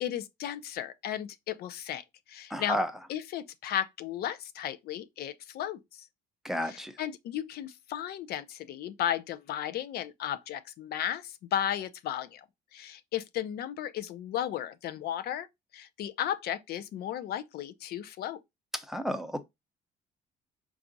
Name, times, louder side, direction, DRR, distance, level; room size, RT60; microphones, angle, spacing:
voice 1, 0.0-2.0 2.3-2.8 3.1-6.0 6.7-12.4 12.7-15.5 15.7-18.4, left 10 dB, 70° left, 0.6 m, -34 dB
voice 2, 2.5-2.9 6.4-6.9 18.7-19.4, equal, ahead, 0.6 m, -31 dB
4.6 x 2.4 x 3.9 m
cardioid pair, 110°, 17 cm